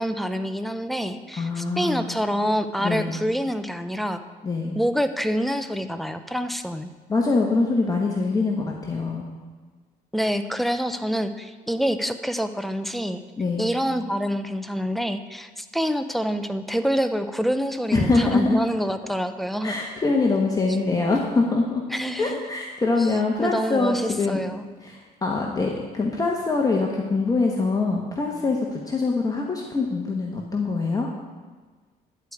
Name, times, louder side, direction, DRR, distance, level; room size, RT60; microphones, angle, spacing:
voice 1, 0.0-4.2 4.7-6.9 10.1-13.2 13.6-19.7 20.8-20.9 21.9-22.4 23.4-24.6, equal, ahead, 9 dB, 0.6 m, -26 dB
voice 2, 1.4-2.1 2.8-3.2 4.4-4.8 7.1-9.3 13.4-13.7 17.9-18.6 19.6-21.8 22.2-24.4 24.8-31.1, left 3 dB, 20° left, -1 dB, 1.2 m, -24 dB
11.0 x 4.9 x 8.3 m, 1.4 s
cardioid pair, 110°, 17 cm